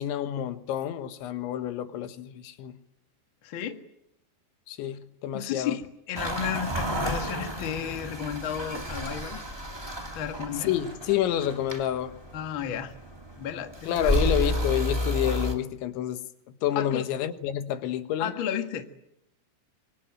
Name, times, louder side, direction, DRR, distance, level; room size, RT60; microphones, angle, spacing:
voice 1, 0.0-2.8 4.7-5.7 10.6-12.2 13.9-16.2 16.6-18.3, left 11 dB, 85° left, 3.8 m, -29 dB
voice 2, 3.4-3.8 5.3-9.4 10.1-10.7 12.3-12.9 13.4-14.1 16.7-17.0 18.2-18.9, left 9 dB, 60° left, 1.3 m, -33 dB
sound 1, 6.1-15.5, equal, 20° right, 0.7 m, -31 dB
25.0 x 25.0 x 9.1 m
omnidirectional pair, 5.1 m